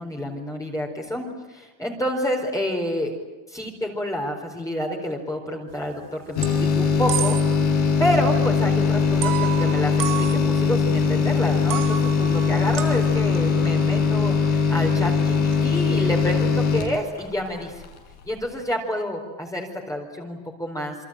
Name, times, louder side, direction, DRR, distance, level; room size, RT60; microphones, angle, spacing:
voice 1, 0.0-3.2 3.5-17.8 18.2-21.0, equal, 5° left, 0 dB, 4.3 m, -29 dB
sound 1, 5.7-6.0 6.3-7.7 8.0-8.1 9.2-11.1 11.5-15.9, right 11 dB, 45° right, 1.9 m, -33 dB
sound 2, 6.4-18.0 18.3-18.4, left 5 dB, 60° left, 6.6 m, -21 dB
28.5 x 23.5 x 8.9 m, 1.2 s
cardioid pair, 130°, 45 cm